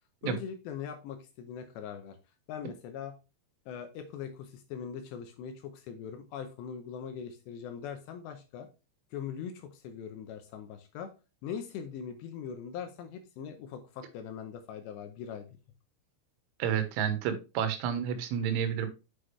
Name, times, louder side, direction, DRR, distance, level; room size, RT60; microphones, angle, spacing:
voice 1, 0.2-2.2 2.5-3.1 3.7-8.7 9.1-11.1 11.4-15.5, left 7 dB, 75° left, 6 dB, 2.7 m, -41 dB
voice 2, 16.6-18.9, right 8 dB, 80° right, 9 dB, 3.4 m, -30 dB
8.1 x 5.9 x 3.2 m, 0.30 s
omnidirectional pair, 5.6 m